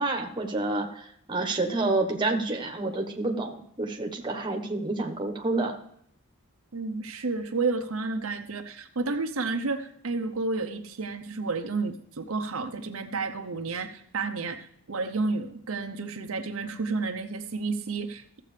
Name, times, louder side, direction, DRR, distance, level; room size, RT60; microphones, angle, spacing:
voice 1, 0.0-5.7, right 2 dB, 20° right, 3 dB, 1.2 m, -29 dB
voice 2, 6.7-18.4, right 3 dB, 70° right, 6 dB, 0.7 m, -31 dB
15.0 x 7.6 x 3.3 m, 0.69 s
head